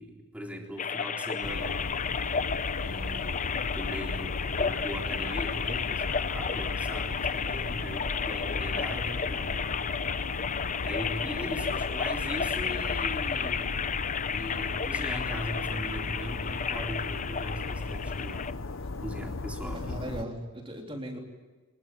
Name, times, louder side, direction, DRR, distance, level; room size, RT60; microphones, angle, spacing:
voice 1, 0.0-1.9 2.8-9.7 10.8-13.8 14.3-18.6 19.0-20.0, equal, 5° right, 1 dB, 3.7 m, -39 dB
sound 1, 0.8-18.5, left 6 dB, 35° left, 0.8 m, -32 dB
sound 2, 1.4-20.2, left 3 dB, 70° left, 0.9 m, -36 dB
voice 2, 19.7-21.2, right 1 dB, 25° right, 2 dB, 3.6 m, -38 dB
25.0 x 21.0 x 9.1 m, 1.3 s
head